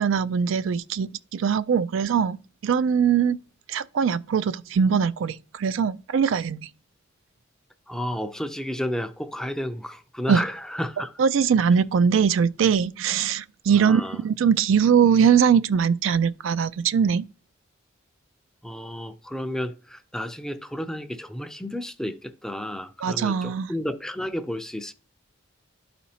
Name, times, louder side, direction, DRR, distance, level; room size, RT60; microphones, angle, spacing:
voice 1, 0.0-2.4 2.6-3.4 3.7-6.6 10.3-10.4 11.2-17.3 23.0-23.7, right 7 dB, 75° right, 0.4 m, -21 dB
voice 2, 7.9-11.1 13.7-14.2 18.6-24.9, equal, 5° left, 0.4 m, -32 dB
12.0 x 4.3 x 2.8 m
head